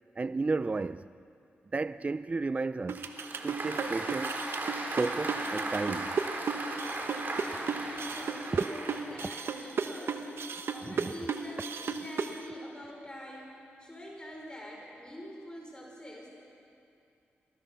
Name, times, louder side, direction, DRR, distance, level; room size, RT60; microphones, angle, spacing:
voice 1, 0.2-1.1 1.7-3.0 3.4-4.4 5.0-6.2 8.5-8.6 10.8-11.1, right 3 dB, 35° right, 0.4 m, -33 dB
Applause, 2.9-9.3, right 2 dB, 50° right, 3.9 m, -37 dB
sound 1, 2.9-12.4, right 6 dB, 70° right, 1.2 m, -34 dB
voice 2, 7.3-16.3, equal, 20° left, 4.9 m, -45 dB
25.5 x 16.5 x 6.8 m
cardioid pair, 55°, 4 cm